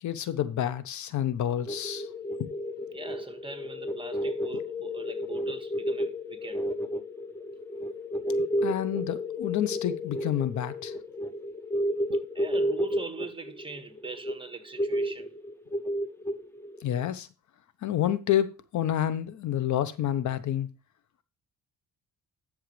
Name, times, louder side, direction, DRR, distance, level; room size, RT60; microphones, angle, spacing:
voice 1, 0.0-2.1 2.4-2.5 8.6-10.9 16.8-17.3 17.8-20.7, left 11 dB, 70° left, 1.0 m, -29 dB
sound 1, 1.7-17.1, equal, 10° left, 1.1 m, -32 dB
voice 2, 2.9-6.6 12.1-15.3, right 4 dB, 15° right, 1.6 m, -42 dB
11.5 x 6.4 x 3.3 m
cardioid pair, 90°, 30 cm